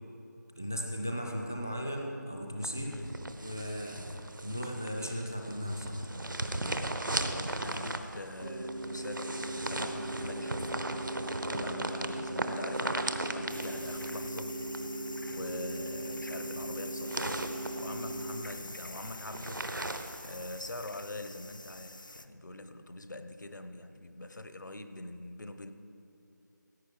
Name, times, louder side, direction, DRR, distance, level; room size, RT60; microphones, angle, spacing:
voice 1, 0.5-3.0 3.4-4.1 4.4-6.0, equal, 10° left, 1 dB, 0.3 m, -36 dB
sound 1, 2.6-20.9, right 2 dB, 85° right, 1.0 m, -38 dB
voice 2, 2.8-3.1 7.4-10.9 11.5-14.6 15.3-19.7 20.2-25.7, left 2 dB, 70° left, 9 dB, 1.0 m, -43 dB
sound 2, 8.4-18.4, right 1 dB, 60° right, 0.8 m, -39 dB
sound 3, 13.5-22.3, left 2 dB, 90° left, 0.7 m, -46 dB
16.5 x 8.1 x 4.9 m, 2.8 s
figure-of-eight pair, 170°, 10 cm